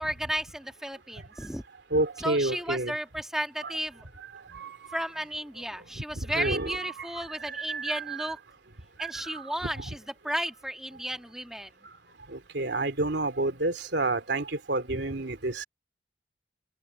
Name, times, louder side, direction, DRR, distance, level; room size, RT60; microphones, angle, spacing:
voice 1, 0.0-1.6 2.2-4.0 4.9-8.4 9.0-10.0 10.2-11.7, equal, 5° right, 1.6 m, -33 dB
voice 2, 1.9-2.9 3.6-3.8 4.5-5.1 6.0-6.1 6.3-8.3 9.0-9.4 9.8-9.9 12.3-15.6, right 2 dB, 85° right, 2.6 m, -30 dB
open air
head